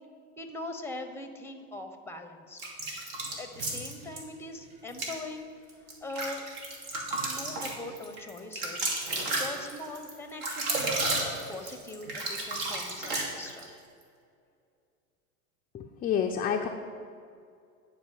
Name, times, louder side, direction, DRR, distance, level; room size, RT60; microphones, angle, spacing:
voice 1, 0.4-2.6 3.4-5.5 5.8-6.4 7.2-13.7, left 2 dB, 5° left, 7 dB, 0.8 m, -41 dB
water scoop drip with hand bathroom acoustic, 2.6-4.2 4.9-5.2 5.7-13.7, right 2 dB, 55° right, 2.3 m, -32 dB
voice 2, 15.7-16.7, left 8 dB, 20° left, 2 dB, 0.4 m, -29 dB
9.5 x 4.6 x 7.3 m, 2.3 s
hypercardioid pair, 100°, 44 cm